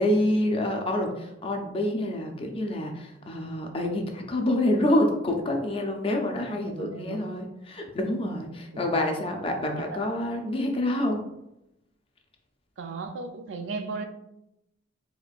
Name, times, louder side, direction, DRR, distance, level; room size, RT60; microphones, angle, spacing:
voice 1, 0.0-11.2, left 1 dB, 30° left, 2 dB, 0.4 m, -27 dB
voice 2, 6.5-7.5 8.7-8.9 9.6-9.8 12.8-14.0, right 3 dB, 70° right, 6 dB, 0.4 m, -36 dB
4.2 x 2.4 x 2.4 m, 0.86 s
head